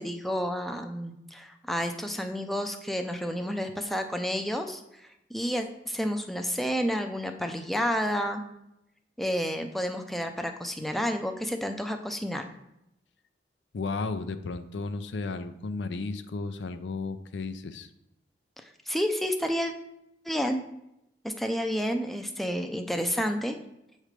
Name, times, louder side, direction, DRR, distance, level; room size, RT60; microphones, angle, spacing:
voice 1, 0.0-8.4 9.2-12.4 18.6-19.7 20.2-20.6 21.2-23.6, equal, ahead, 5 dB, 0.4 m, -30 dB
voice 2, 13.7-17.9, left 3 dB, 90° left, 11 dB, 0.5 m, -34 dB
7.4 x 3.2 x 5.0 m, 0.85 s
head